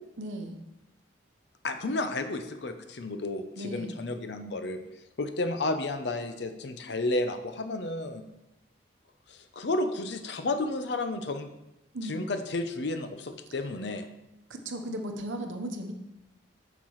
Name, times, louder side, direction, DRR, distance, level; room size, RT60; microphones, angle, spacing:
voice 1, 0.2-0.6 3.6-4.0 11.9-12.2 14.5-15.9, right 1 dB, 75° right, 5 dB, 0.9 m, -36 dB
voice 2, 1.6-4.8 5.2-8.2 9.3-11.5 12.0-14.1, left 2 dB, 60° left, 8 dB, 0.6 m, -32 dB
8.4 x 5.9 x 3.1 m, 0.93 s
head